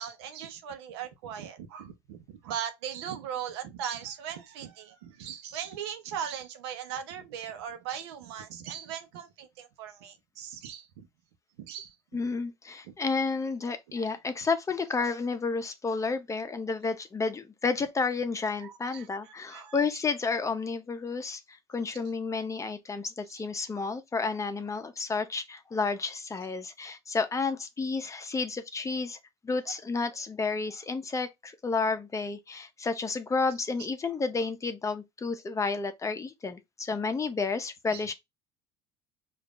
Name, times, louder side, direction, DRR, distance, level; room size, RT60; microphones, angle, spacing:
voice 1, 0.0-11.1 11.6-11.9 12.9-13.0 18.6-19.8 23.3-23.4 23.7-23.9 24.3-24.4 37.9-38.0, right 8 dB, 85° right, 0.8 m, -39 dB
voice 2, 12.1-29.2 29.4-38.1, left 4 dB, 25° left, 0.7 m, -31 dB
5.0 x 2.5 x 2.4 m
hypercardioid pair, 80°, 13 cm